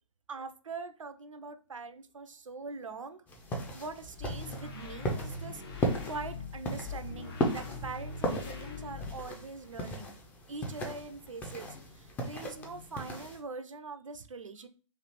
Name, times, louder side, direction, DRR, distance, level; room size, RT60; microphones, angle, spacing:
voice 1, 0.3-3.2 3.7-10.1 10.5-14.7, right 4 dB, 80° right, 9 dB, 0.4 m, -43 dB
sound 1, 3.3-13.4, equal, 10° left, 0.4 m, -37 dB
sound 2, 4.0-9.5, left 4 dB, 50° left, 0.8 m, -42 dB
3.1 x 2.4 x 2.9 m, 0.37 s
figure-of-eight pair, 120°, 16 cm